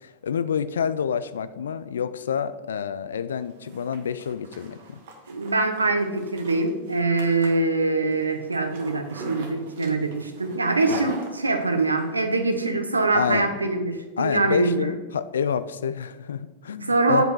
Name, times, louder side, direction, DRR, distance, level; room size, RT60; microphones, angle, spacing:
voice 1, 0.0-5.0 10.9-11.1 13.1-13.5 14.2-17.2, left 7 dB, 75° left, 14 dB, 0.4 m, -28 dB
Zipper (clothing), 3.4-12.1, right 2 dB, 60° right, 1.3 m, -41 dB
voice 2, 5.3-14.9 16.8-17.2, right 3 dB, 85° right, 7 dB, 0.8 m, -23 dB
7.8 x 5.3 x 4.7 m, 1.2 s
figure-of-eight pair, 90°, 0 cm